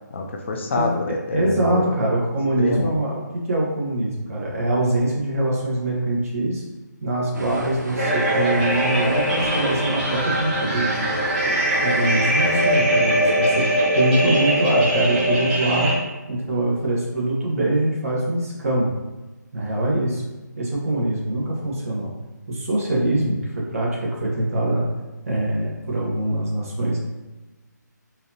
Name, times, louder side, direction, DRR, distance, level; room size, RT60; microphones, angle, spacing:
voice 1, 0.1-1.9 2.6-2.9, left 3 dB, 40° left, 2 dB, 0.4 m, -26 dB
voice 2, 1.3-6.6 7.0-10.9 11.8-13.7 13.9-15.9 16.3-19.0 19.5-20.2 20.6-22.1 22.5-24.9 25.2-27.0, right 1 dB, 50° right, -4 dB, 1.4 m, -23 dB
sound 1, 7.3-12.8, right 1 dB, 70° right, 0.9 m, -33 dB
sound 2, 8.0-16.0, right 1 dB, 30° right, 1.3 m, -21 dB
4.0 x 2.8 x 2.8 m, 1.2 s
figure-of-eight pair, 155°, 10 cm